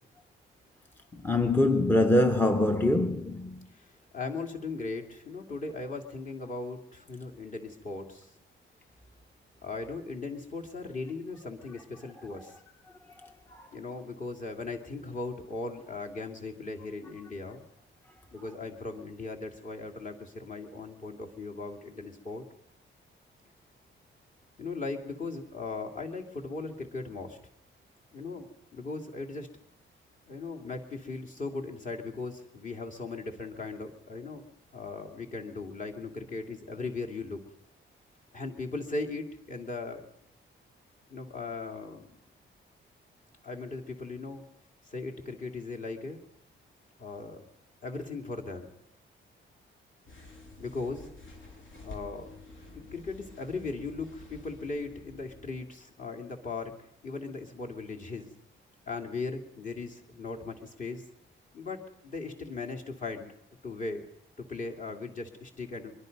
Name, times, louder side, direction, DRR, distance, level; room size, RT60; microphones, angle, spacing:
voice 1, 1.1-3.7 13.2-13.7, left 1 dB, 10° left, 0.7 m, -25 dB
voice 2, 3.7-8.3 9.6-12.5 13.7-17.6 18.3-22.4 24.6-27.4 28.1-29.5 30.3-37.4 38.3-40.1 41.1-42.2 43.4-44.4 44.8-46.2 47.0-47.5 47.8-48.7 50.6-51.1 51.8-52.3 52.7-56.8 57.0-58.3 58.9-61.0 61.5-63.3 63.6-64.0 64.4-65.9, left 3 dB, 40° left, 2.8 m, -38 dB
sound 1, 50.1-55.8, left 2 dB, 70° left, 6.6 m, -49 dB
23.0 x 23.0 x 5.4 m
wide cardioid pair, 175°, 21 cm